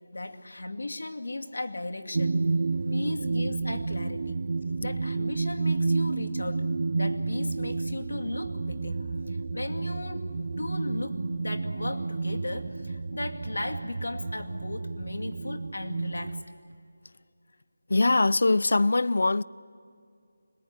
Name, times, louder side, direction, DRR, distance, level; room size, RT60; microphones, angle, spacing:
voice 1, 0.1-2.4 2.9-4.4 4.8-10.3 10.6-16.5, left 2 dB, 85° left, 2.3 m, -36 dB
sound 1, 2.1-16.4, right 3 dB, 45° right, 0.6 m, -30 dB
voice 2, 17.9-19.4, left 2 dB, 60° left, 0.6 m, -22 dB
25.5 x 21.0 x 9.7 m
figure-of-eight pair, 175°, 0 cm